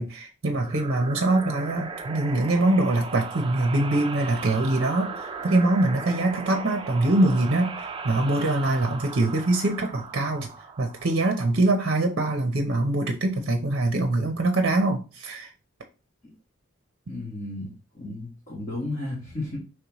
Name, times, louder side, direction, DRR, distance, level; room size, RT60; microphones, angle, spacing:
voice 1, 0.0-10.5 10.8-15.5, right 2 dB, 55° right, 0.7 m, -23 dB
sound 1, 0.5-11.9, right 4 dB, 25° right, 0.4 m, -37 dB
voice 2, 17.1-19.6, left 2 dB, 35° left, 1.5 m, -34 dB
5.2 x 3.3 x 3.0 m
head